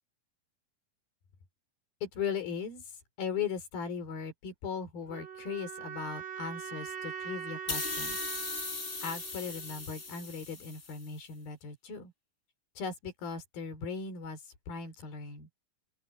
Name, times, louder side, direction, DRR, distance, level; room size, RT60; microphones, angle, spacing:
voice 1, 2.0-2.9 3.2-8.2 9.0-12.1 12.8-15.5, left 6 dB, 90° left, 5.9 m, -38 dB
sound 1, 5.1-10.1, right 8 dB, 60° right, 4.3 m, -42 dB
sound 2, 7.7-11.1, left 4 dB, 35° left, 0.8 m, -38 dB
open air
omnidirectional pair, 4.1 m